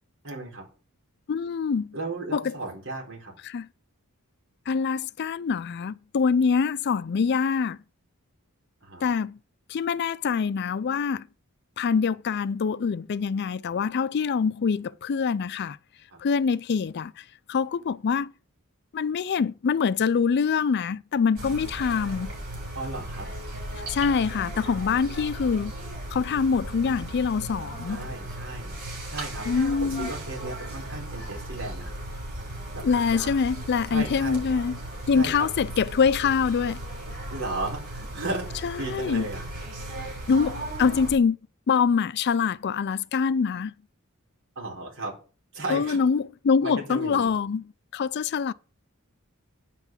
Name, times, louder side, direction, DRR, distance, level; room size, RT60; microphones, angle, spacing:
voice 1, 0.2-0.6 1.9-3.3 8.8-9.1 16.1-16.2 22.7-23.3 27.9-28.7 29.1-29.5 29.8-31.9 32.7-33.4 33.9-34.4 35.1-35.5 37.3-39.5 44.6-45.1 45.5-46.0 46.6-47.3, right 2 dB, 65° right, 4.6 m, -35 dB
voice 2, 1.3-1.9 2.3-2.6 3.4-3.7 4.7-7.8 9.0-9.4 9.7-11.3 11.8-15.8 16.2-18.3 18.9-22.3 23.9-25.7 26.1-28.0 29.5-30.1 32.8-34.8 35.1-36.8 38.6-39.3 40.3-41.4 41.7-43.7 45.7-47.7 47.9-48.5, left 5 dB, 50° left, 0.4 m, -25 dB
sound 1, 21.4-41.1, right 1 dB, 45° right, 7.2 m, -36 dB
9.0 x 5.8 x 7.4 m
head